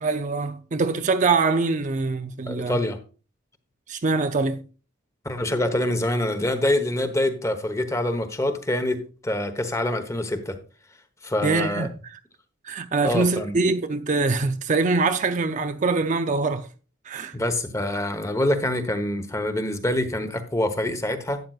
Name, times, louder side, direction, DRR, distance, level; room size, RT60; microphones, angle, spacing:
voice 1, 0.0-2.8 3.9-4.6 11.4-11.9 12.6-16.7 17.1-17.3, right 3 dB, 40° right, 0.5 m, -23 dB
voice 2, 2.5-3.0 5.2-10.6 11.2-11.9 13.0-13.6 17.3-21.4, left 1 dB, 15° left, 1.0 m, -25 dB
12.0 x 9.4 x 2.4 m
head